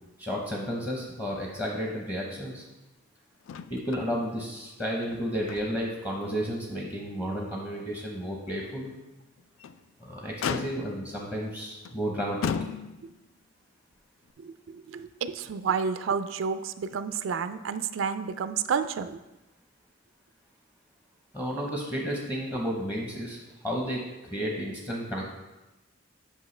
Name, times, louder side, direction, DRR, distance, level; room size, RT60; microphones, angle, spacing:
voice 1, 0.2-2.6 3.7-8.9 10.0-12.4 21.3-23.4 23.6-25.2, equal, 15° left, -2 dB, 0.8 m, -32 dB
Motor vehicle (road), 3.5-4.1 4.4-4.5 5.0-6.0 6.4-6.5 7.1-7.2 9.4-9.8 10.4-11.1 11.8-12.0 12.4-13.2 14.3-14.4, left 7 dB, 80° left, 0.3 m, -34 dB
voice 2, 14.4-19.2, right 6 dB, 75° right, 10 dB, 0.4 m, -30 dB
8.4 x 5.5 x 3.2 m, 1.0 s
head